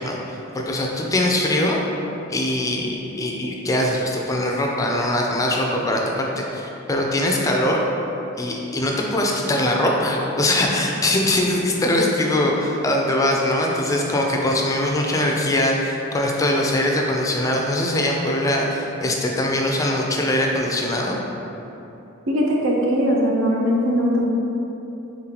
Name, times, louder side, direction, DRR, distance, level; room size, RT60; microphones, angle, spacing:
voice 1, 0.0-1.8 2.3-7.9 8.4-21.2, left 1 dB, 15° left, 0 dB, 0.3 m, -22 dB
voice 2, 22.3-24.3, equal, 75° right, -2 dB, 0.6 m, -20 dB
3.8 x 3.7 x 2.9 m, 3.0 s
head